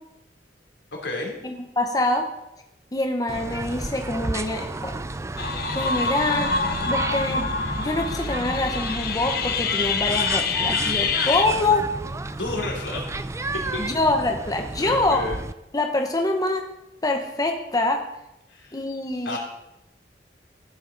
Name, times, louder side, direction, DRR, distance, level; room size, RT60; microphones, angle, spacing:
voice 1, 1.0-1.4 12.4-13.2 13.7-13.8 14.8-15.4 18.5-18.8 19.2-19.4, left 2 dB, 90° left, 0 dB, 3.0 m, -31 dB
voice 2, 1.8-2.3 2.9-5.0 5.7-6.6 6.9-11.9 13.8-15.2 15.7-16.6 17.0-18.0 18.7-19.4, left 2 dB, 20° left, 4 dB, 0.9 m, -25 dB
sound 1, 3.3-15.5, right 2 dB, 15° right, 0.4 m, -32 dB
sound 2, 5.4-11.4, left 5 dB, 60° left, 1.0 m, -26 dB
14.5 x 8.4 x 3.9 m, 0.88 s
head